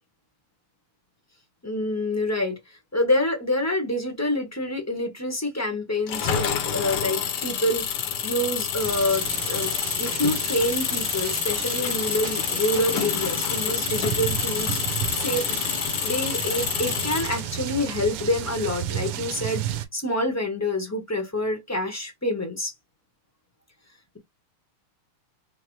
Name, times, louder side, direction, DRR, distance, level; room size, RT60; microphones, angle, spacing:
voice 1, 1.6-2.6 2.9-7.9 8.2-9.7 10.0-15.7 16.0-22.7, left 1 dB, 20° left, 0.4 m, -27 dB
Engine, 6.1-17.7, left 8 dB, 65° left, 1.1 m, -28 dB
sound 1, 8.8-19.9, right 11 dB, 85° right, 1.6 m, -33 dB
5.5 x 2.1 x 3.1 m
omnidirectional pair, 2.4 m